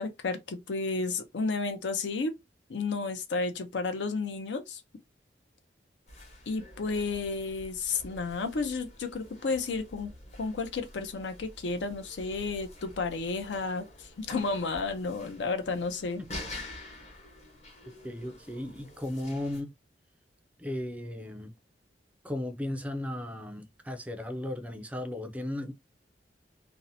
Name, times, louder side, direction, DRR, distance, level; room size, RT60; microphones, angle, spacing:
voice 1, 0.0-2.4 2.7-4.8 6.5-10.1 10.4-16.2, left 4 dB, 80° left, 0.5 m, -32 dB
sound 1, 6.1-19.6, left 1 dB, 40° left, 0.8 m, -47 dB
voice 2, 18.0-19.7 20.6-21.5 22.2-25.7, left 1 dB, 10° right, 0.3 m, -35 dB
2.6 x 2.0 x 2.6 m
head